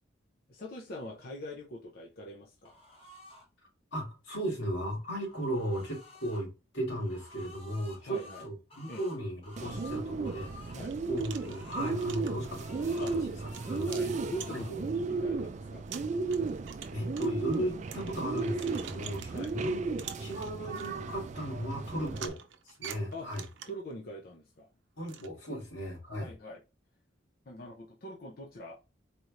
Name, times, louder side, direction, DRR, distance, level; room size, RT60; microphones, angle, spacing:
voice 1, 0.5-2.7 8.0-8.4 8.9-9.0 10.7-10.9 13.0-13.3 13.8-15.8 19.3-19.6 22.1-22.2 23.1-23.3 23.7-24.7 25.5-25.6 26.2-26.6 27.5-28.8, equal, 50° left, 0.6 m, -43 dB
sound 1, 2.6-3.5 4.8-6.4 6.9-10.8 11.2-12.0 12.4-13.9 14.1-14.7, left 2 dB, 30° left, 1.1 m, -52 dB
voice 2, 3.9-6.5 6.7-10.8 11.1-13.4 13.6-14.2 14.5-14.6 16.9-22.4 22.7-23.4 25.0-26.3, equal, 80° left, 2.4 m, -36 dB
Bird, 9.6-22.3, right 4 dB, 40° right, 0.4 m, -35 dB
sound 2, 10.1-10.2 10.8-14.9 15.4-15.5 15.9-19.6 20.0-20.9 22.1-23.9 25.1-25.3, right 8 dB, 80° right, 0.6 m, -47 dB
4.2 x 3.1 x 2.5 m
head